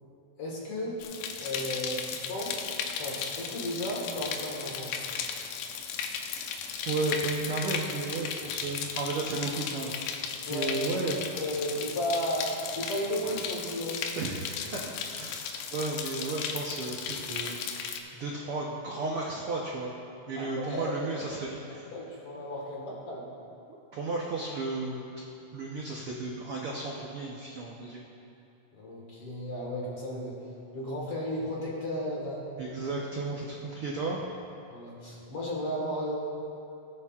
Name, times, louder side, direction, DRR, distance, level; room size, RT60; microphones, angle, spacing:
voice 1, 0.4-1.0 1.4-4.9 10.5-10.8 11.3-14.0 20.4-21.4 21.9-23.3 28.7-30.4 30.7-32.5 34.7-36.1, equal, 50° left, -3 dB, 2.3 m, -34 dB
sound 1, 1.0-18.0, left 6 dB, 85° left, 2.3 m, -36 dB
voice 2, 6.9-10.2 10.5-11.2 14.2-14.8 15.1-17.6 18.1-19.9 20.3-21.9 23.9-25.2 25.5-28.0 32.6-34.2, right 3 dB, 80° right, -3 dB, 1.2 m, -34 dB
18.0 x 10.5 x 2.4 m, 2.7 s
omnidirectional pair, 3.8 m